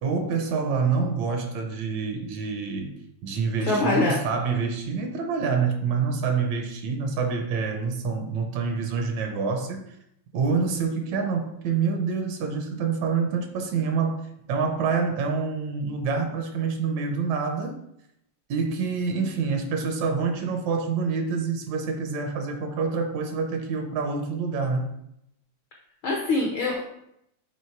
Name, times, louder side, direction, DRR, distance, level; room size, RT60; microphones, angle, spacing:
voice 1, 0.0-3.0 3.2-9.8 10.3-14.2 14.5-17.8 18.5-24.9, right 5 dB, 75° right, 4 dB, 2.0 m, -27 dB
voice 2, 3.6-4.2 26.0-26.8, left 2 dB, 75° left, -1 dB, 1.2 m, -23 dB
7.7 x 3.1 x 4.5 m, 0.78 s
omnidirectional pair, 3.4 m